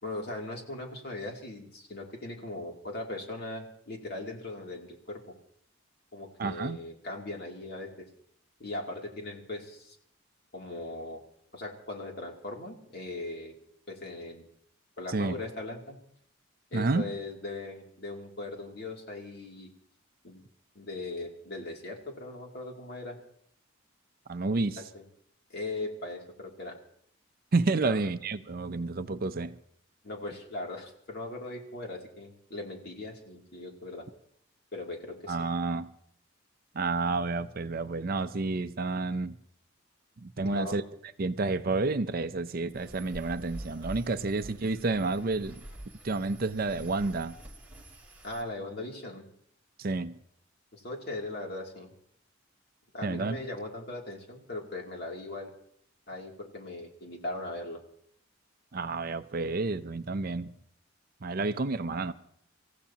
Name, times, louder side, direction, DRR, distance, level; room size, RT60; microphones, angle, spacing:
voice 1, 0.0-5.3 6.1-8.1 8.6-10.0 10.5-11.2 11.5-13.5 13.9-14.5 15.0-16.0 16.7-19.7 20.2-20.5 20.7-23.2 24.8-25.0 25.5-26.8 27.8-28.0 30.0-34.0 34.7-35.5 40.4-40.8 48.2-49.2 50.7-51.9 52.9-55.5 56.1-57.8, left 2 dB, 50° left, 2.7 m, -39 dB
voice 2, 6.4-6.8 15.1-15.4 16.7-17.1 24.3-24.8 27.5-29.6 35.3-35.9 36.7-39.4 40.2-40.8 41.2-45.6 46.0-47.4 49.8-50.2 53.0-53.4 58.7-60.5 61.2-62.1, right 3 dB, 45° right, 0.5 m, -30 dB
sound 1, 42.7-48.4, right 1 dB, 10° right, 2.6 m, -46 dB
27.0 x 15.5 x 2.9 m
head